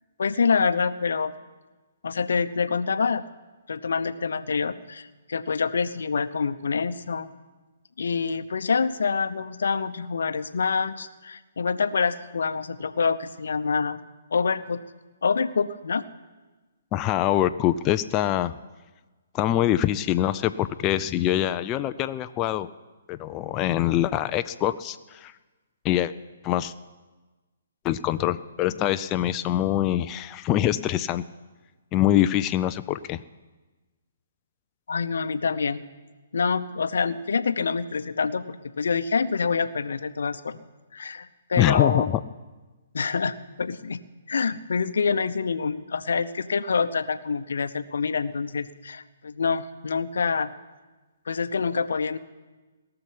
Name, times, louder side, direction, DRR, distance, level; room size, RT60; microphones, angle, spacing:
voice 1, 0.2-1.3 2.0-3.2 3.7-7.3 8.0-14.8 15.2-16.0 34.9-35.8 36.3-40.7 40.9-42.1 42.9-44.0 44.3-50.5 51.3-52.2, left 5 dB, 65° left, 12 dB, 0.8 m, -26 dB
voice 2, 16.9-18.5 19.3-22.7 23.1-25.3 25.8-26.1 26.4-26.7 27.8-31.2 31.9-33.2 41.6-42.2, left 12 dB, 25° left, 11 dB, 0.4 m, -24 dB
18.0 x 6.9 x 9.9 m, 1.2 s
figure-of-eight pair, 130°, 0 cm